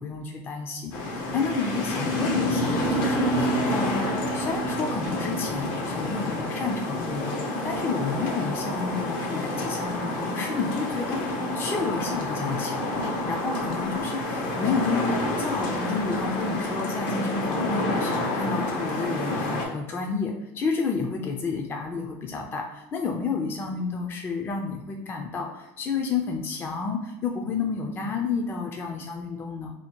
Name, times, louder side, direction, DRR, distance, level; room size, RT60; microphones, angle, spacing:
voice 1, 0.0-29.7, left 4 dB, 25° left, 2 dB, 0.4 m, -30 dB
sound 1, 0.9-19.6, left 1 dB, 70° left, 1.0 m, -28 dB
2.8 x 2.7 x 4.4 m, 0.93 s
supercardioid pair, 120°, 8 cm